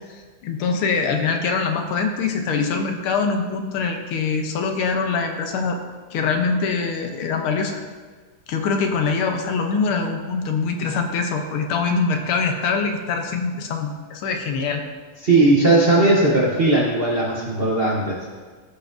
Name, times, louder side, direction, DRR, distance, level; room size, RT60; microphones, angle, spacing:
voice 1, 0.1-5.8 6.1-7.8 8.5-14.8, left 4 dB, 75° left, 4 dB, 1.6 m, -23 dB
voice 2, 15.2-18.4, right 2 dB, 45° right, -5 dB, 0.8 m, -18 dB
14.5 x 5.6 x 2.6 m, 1.5 s
omnidirectional pair, 2.4 m